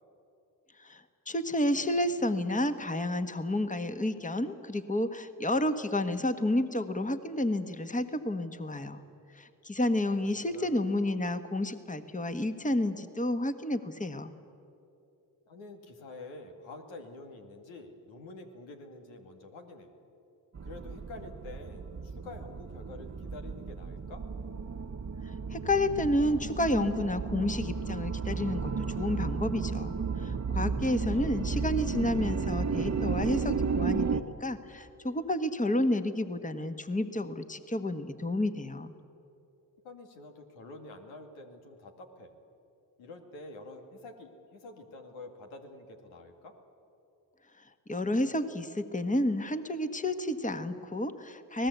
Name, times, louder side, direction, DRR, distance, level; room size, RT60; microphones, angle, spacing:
voice 1, 0.8-9.0 9.3-14.3 25.5-38.9 47.9-51.7, left 1 dB, 15° left, 9 dB, 1.5 m, -30 dB
voice 2, 9.7-10.8 15.5-19.9 20.6-24.2 31.0-31.5 39.8-42.3 43.0-46.5, left 2 dB, 90° left, 3 dB, 2.3 m, -48 dB
sound 1, 20.5-34.2, right 5 dB, 35° right, 1.2 m, -33 dB
25.0 x 18.5 x 8.2 m, 2.7 s
supercardioid pair, 50°, 46 cm